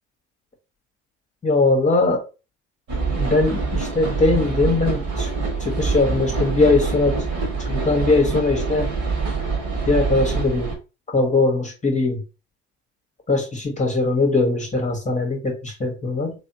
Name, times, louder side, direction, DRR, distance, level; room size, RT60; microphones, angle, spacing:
voice 1, 1.4-2.2 3.2-5.3 5.6-7.2 7.6-8.9 9.9-10.7 11.1-12.2 13.3-16.3, left 3 dB, 20° left, 1 dB, 1.1 m, -20 dB
sound 1, 2.9-10.8, right 4 dB, 55° right, 1.8 m, -25 dB
3.5 x 3.4 x 2.7 m, 0.30 s
hypercardioid pair, 65°, 37 cm